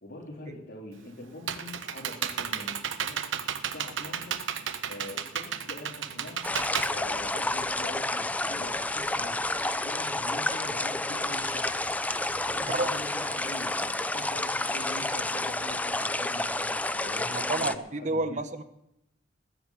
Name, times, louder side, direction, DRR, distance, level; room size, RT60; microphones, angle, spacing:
voice 1, 0.0-3.2 3.6-4.4 4.9-6.4 6.9-11.8 12.4-18.4, left 1 dB, 60° left, -5 dB, 3.4 m, -43 dB
Computer keyboard, 0.9-7.8, right 8 dB, 90° right, 0.9 m, -33 dB
sound 1, 6.4-17.8, left 2 dB, 10° left, 0.5 m, -30 dB
sound 2, 8.7-15.5, right 1 dB, 15° right, 5.8 m, -54 dB
voice 2, 17.2-18.6, right 2 dB, 40° right, 10 dB, 1.2 m, -30 dB
20.0 x 7.9 x 7.4 m, 0.79 s
head